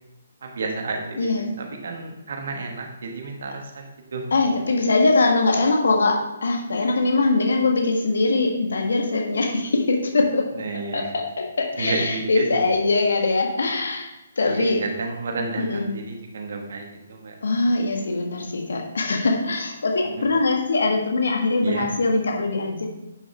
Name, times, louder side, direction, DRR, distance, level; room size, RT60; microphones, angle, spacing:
voice 1, 0.4-3.8 4.1-4.2 10.5-11.1 11.8-12.6 14.4-17.3 21.6-21.9, right 3 dB, 55° right, 2 dB, 1.8 m, -31 dB
voice 2, 1.2-1.5 4.3-10.4 10.9-11.0 11.6-14.1 14.4-14.8 15.6-15.9 17.4-22.9, left 3 dB, 65° left, 2 dB, 1.7 m, -22 dB
10.0 x 6.2 x 3.5 m, 0.99 s
figure-of-eight pair, 135°, 0 cm